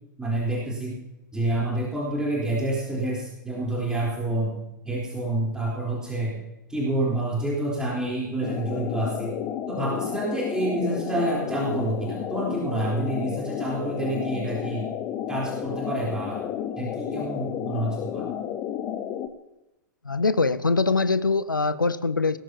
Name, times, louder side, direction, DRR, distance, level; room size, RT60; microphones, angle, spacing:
voice 1, 0.2-1.0 1.3-6.4 6.7-9.4 9.7-14.9 15.3-16.4 16.8-18.3, right 1 dB, 5° right, 3.8 m, -28 dB
sound 1, 8.4-19.3, left 10 dB, 30° left, 0.9 m, -32 dB
voice 2, 20.0-22.4, left 3 dB, 80° left, 0.6 m, -23 dB
17.5 x 14.0 x 2.9 m
figure-of-eight pair, 100°, 11 cm